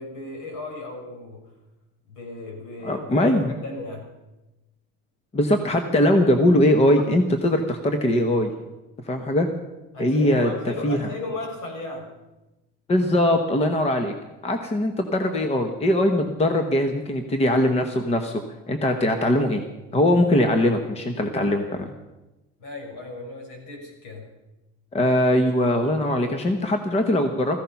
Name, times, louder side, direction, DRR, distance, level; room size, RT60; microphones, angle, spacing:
voice 1, 0.0-1.5 2.1-4.1 9.9-12.1 22.6-24.3, left 2 dB, 60° left, 1 dB, 5.9 m, -35 dB
voice 2, 2.8-3.5 5.3-8.5 9.1-9.5 10.0-10.5 10.8-11.0 12.9-14.1 14.4-18.4 18.7-19.6 19.9-21.9 24.9-27.6, left 1 dB, 20° left, 6 dB, 1.0 m, -21 dB
16.0 x 15.0 x 5.8 m, 1.0 s
cardioid pair, 165°, 33 cm